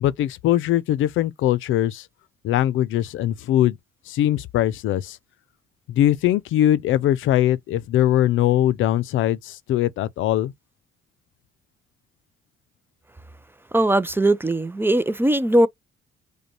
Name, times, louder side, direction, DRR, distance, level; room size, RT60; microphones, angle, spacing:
voice 1, 0.0-2.1 2.4-3.8 4.1-5.2 5.9-10.5, left 12 dB, 80° left, 0.5 m, -21 dB
voice 2, 13.7-15.7, right 1 dB, 10° right, 0.4 m, -19 dB
5.0 x 2.2 x 3.0 m
cardioid pair, 90°, 20 cm